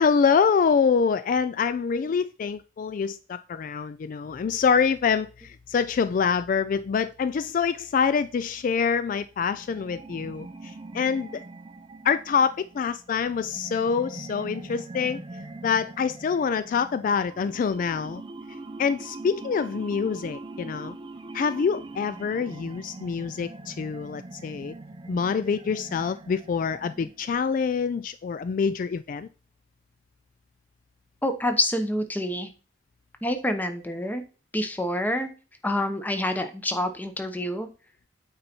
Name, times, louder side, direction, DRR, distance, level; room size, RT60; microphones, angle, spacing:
voice 1, 0.0-11.4 12.0-15.2 15.6-18.2 18.8-21.0 21.3-24.7 25.1-29.3, left 6 dB, 50° left, 0.3 m, -25 dB
sound 1, 9.4-27.3, right 2 dB, 30° right, 0.5 m, -42 dB
voice 2, 31.2-32.5 33.2-34.2 34.5-35.3 35.6-37.7, left 1 dB, 10° left, 0.9 m, -27 dB
8.7 x 4.0 x 4.4 m
head